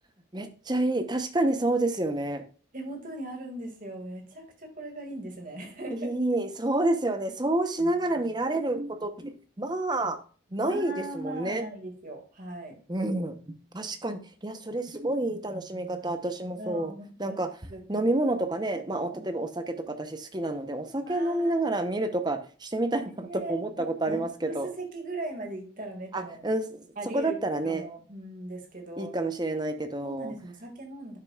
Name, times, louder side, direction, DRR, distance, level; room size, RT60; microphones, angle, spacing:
voice 1, 0.3-2.4 6.0-10.2 10.5-11.6 12.9-16.9 17.2-17.5 17.9-24.7 26.1-26.6 27.1-27.8 29.0-30.3, right 2 dB, 20° right, 8 dB, 0.8 m, -29 dB
voice 2, 2.7-6.1 10.5-12.8 16.5-18.1 19.1-19.4 21.1-21.7 23.2-26.5 27.0-27.4 27.6-29.1 30.0-31.2, right 1 dB, 45° right, 3 dB, 2.2 m, -39 dB
11.5 x 6.6 x 2.4 m, 0.40 s
head